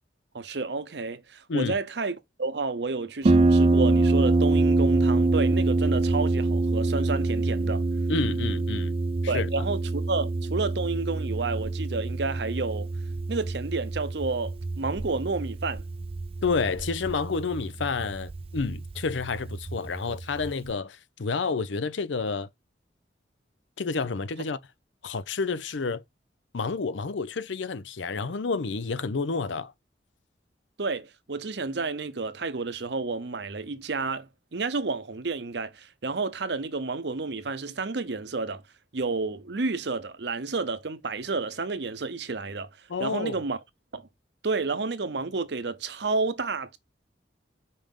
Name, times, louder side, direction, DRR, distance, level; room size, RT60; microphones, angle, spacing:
voice 1, 0.3-7.8 9.3-12.9 13.3-15.8 30.8-38.6 38.9-42.7 43.0-43.6 43.9-44.1 44.4-46.8, right 3 dB, 65° right, 0.8 m, -30 dB
Harp, 3.2-20.7, right 2 dB, 30° right, 0.4 m, -26 dB
voice 2, 8.1-9.0 9.2-9.6 16.4-22.5 23.8-24.6 25.0-26.0 26.5-29.7 42.9-43.4, left 4 dB, 85° left, 0.6 m, -29 dB
5.4 x 5.1 x 3.6 m
head